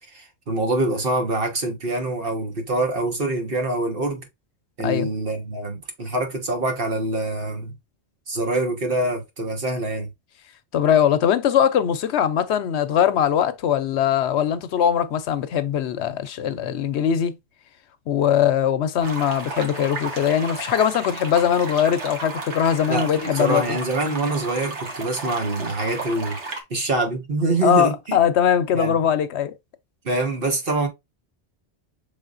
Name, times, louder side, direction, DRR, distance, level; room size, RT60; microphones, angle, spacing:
voice 1, 0.1-4.3 4.8-7.7 8.3-10.1 22.9-26.4 26.7-28.2 28.7-29.0 30.0-30.9, right 2 dB, 55° right, 1.5 m, -25 dB
voice 2, 10.7-17.4 18.1-23.8 27.6-29.5, left 9 dB, 75° left, 0.9 m, -21 dB
sound 1, 19.0-26.6, right 3 dB, 85° right, 1.5 m, -33 dB
5.6 x 3.7 x 2.5 m
omnidirectional pair, 1.2 m